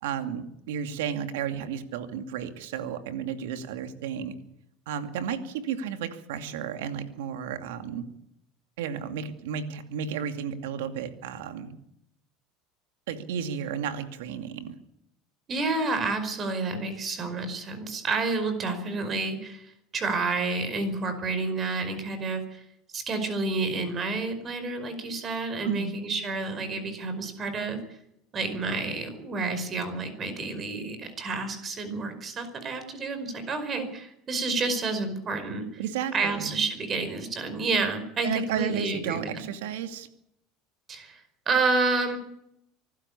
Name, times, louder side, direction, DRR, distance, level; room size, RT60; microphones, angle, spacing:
voice 1, 0.0-4.4 4.9-8.0 8.8-11.7 13.1-14.7 25.6-26.0 35.8-36.5 38.2-40.1, right 8 dB, 85° right, 8 dB, 2.4 m, -33 dB
voice 2, 15.5-22.6 22.9-28.0 28.3-35.8 36.1-39.5 40.9-42.2, right 3 dB, 35° right, 9 dB, 5.0 m, -30 dB
24.5 x 12.5 x 8.5 m, 0.79 s
supercardioid pair, 100°, 0 cm